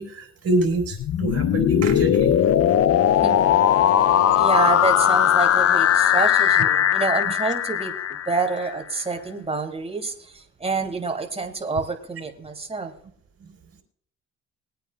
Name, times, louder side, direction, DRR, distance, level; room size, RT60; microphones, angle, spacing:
voice 1, 0.0-2.5, right 2 dB, 55° right, 3 dB, 4.9 m, -26 dB
sound 1, 0.8-8.7, left 10 dB, 50° left, 0.6 m, -19 dB
voice 2, 4.3-8.0 8.2-12.9, right 3 dB, 20° right, 4 dB, 3.0 m, -27 dB
22.5 x 9.1 x 2.4 m, 0.63 s
cardioid pair, 90°, 30 cm